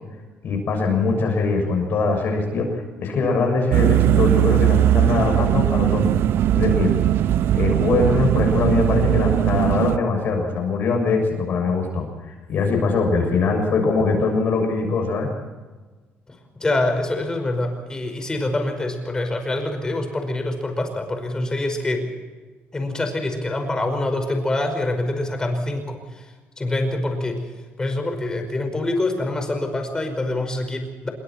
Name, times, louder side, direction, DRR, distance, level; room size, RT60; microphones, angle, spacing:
voice 1, 0.4-6.2 6.5-6.9 7.5-15.3, left 4 dB, 50° left, 1 dB, 7.0 m, -22 dB
sound 1, 3.7-10.0, right 13 dB, 65° right, 0.6 m, -19 dB
voice 2, 16.6-22.1 22.7-27.5 27.8-31.1, left 2 dB, 15° left, 5 dB, 5.3 m, -25 dB
26.5 x 23.5 x 4.4 m, 1.3 s
cardioid pair, 140°, 4 cm